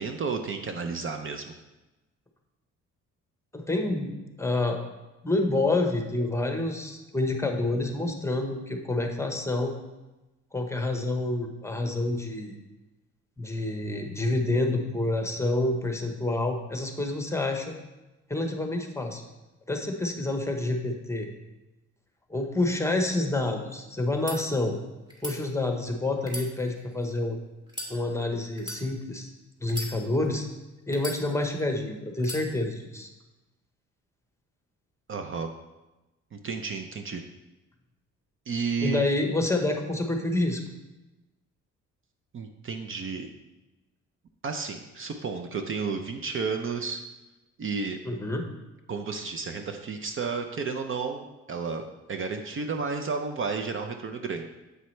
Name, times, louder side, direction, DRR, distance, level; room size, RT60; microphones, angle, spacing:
voice 1, 0.0-1.5 35.1-35.5 36.3-37.2 38.5-39.1 42.3-43.3 44.4-47.0 47.6-48.0 48.9-54.4, right 5 dB, 45° right, 6 dB, 0.6 m, -32 dB
voice 2, 3.5-4.1 4.4-4.8 5.2-9.7 10.5-12.5 13.4-17.7 18.3-19.2 19.7-21.3 22.3-24.8 25.2-27.4 27.9-29.3 29.6-30.5 30.9-33.1 38.8-40.6 48.0-48.5, left 2 dB, 10° left, 3 dB, 0.9 m, -28 dB
sound 1, 24.0-24.4 25.1-25.4 26.2-27.1 27.7-27.9 28.6-28.8 29.6-30.3 30.9-31.6 32.2-32.4, equal, 15° right, 1.7 m, -37 dB
8.0 x 5.5 x 3.2 m, 1.0 s
cardioid pair, 90°, 30 cm